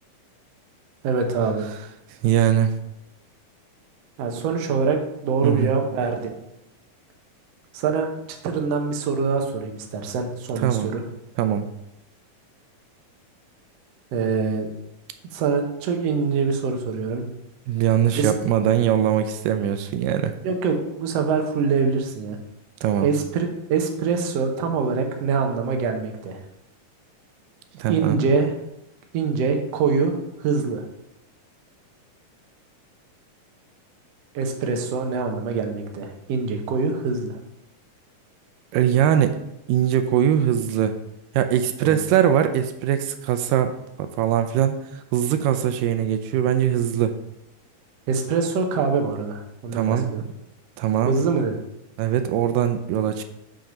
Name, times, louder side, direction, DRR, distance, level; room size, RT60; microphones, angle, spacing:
voice 1, 1.0-1.7 4.2-5.0 5.2-6.3 7.7-8.1 8.4-11.0 14.1-14.7 15.3-17.3 18.2-18.3 20.4-22.4 23.0-26.4 27.9-28.5 29.1-30.1 30.4-30.8 34.3-37.4 41.8-42.0 48.1-50.2 51.1-51.6, right 5 dB, 70° right, 4 dB, 1.6 m, -24 dB
voice 2, 2.2-2.7 5.4-5.7 10.6-10.9 11.4-11.7 17.7-20.3 22.8-23.1 27.8-28.2 38.7-39.4 39.7-40.9 41.3-44.8 45.1-47.2 49.7-50.2 50.8-51.2 52.0-53.2, right 10 dB, 85° right, 9 dB, 2.2 m, -21 dB
6.0 x 5.1 x 5.2 m, 0.83 s
omnidirectional pair, 3.8 m